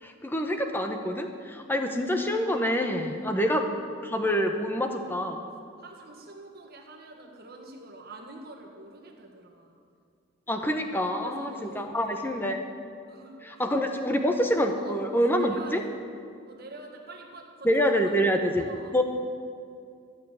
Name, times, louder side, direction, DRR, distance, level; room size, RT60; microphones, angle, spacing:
voice 1, 0.0-3.7 4.0-5.5 10.5-12.6 13.4-15.8 17.6-19.0, equal, 10° left, 5 dB, 0.8 m, -26 dB
voice 2, 3.1-3.4 5.8-9.8 11.2-12.5 13.1-13.4 14.8-15.9 16.5-18.2 18.6-19.0, right 2 dB, 45° right, 0 dB, 1.6 m, -46 dB
13.5 x 6.5 x 9.2 m, 2.4 s
head